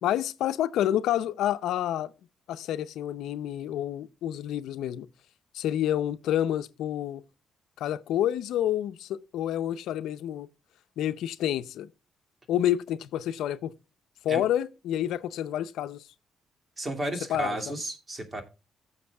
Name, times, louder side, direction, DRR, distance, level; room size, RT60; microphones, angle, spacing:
voice 1, 0.0-2.1 2.5-5.1 5.5-7.2 7.8-10.5 11.0-11.9 12.5-13.7 14.2-16.0 17.3-17.8, left 11 dB, 80° left, 0.6 m, -29 dB
voice 2, 16.8-18.4, right 1 dB, 25° right, 2.4 m, -32 dB
16.0 x 7.2 x 2.3 m
cardioid pair, 90°, 0 cm